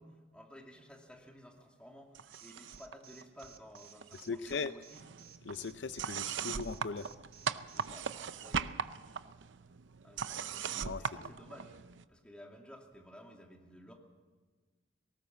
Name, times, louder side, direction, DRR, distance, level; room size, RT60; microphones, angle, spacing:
voice 1, 0.0-5.0 7.7-8.9 10.0-10.7 11.0-13.9, equal, 5° left, 1 dB, 2.5 m, -54 dB
sound 1, 2.1-2.9 3.2-4.2 4.5-12.0, right 6 dB, 75° right, 0.6 m, -40 dB
Alarm, 2.3-7.9, right 9 dB, 50° right, 1.3 m, -56 dB
voice 2, 4.2-4.7 5.5-7.1 10.8-11.0, left 4 dB, 70° left, 12 dB, 0.6 m, -38 dB
18.5 x 18.5 x 7.5 m, 1.4 s
head